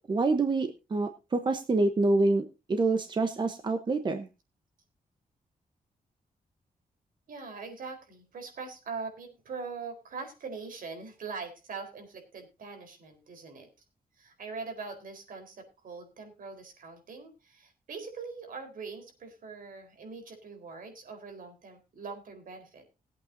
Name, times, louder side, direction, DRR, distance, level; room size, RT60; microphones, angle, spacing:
voice 1, 0.1-4.3, right 3 dB, 30° right, 8 dB, 1.0 m, -27 dB
voice 2, 7.3-13.7 14.2-22.9, right 4 dB, 70° right, 5 dB, 4.2 m, -42 dB
20.5 x 8.5 x 2.7 m, 0.29 s
wide cardioid pair, 155°, 15 cm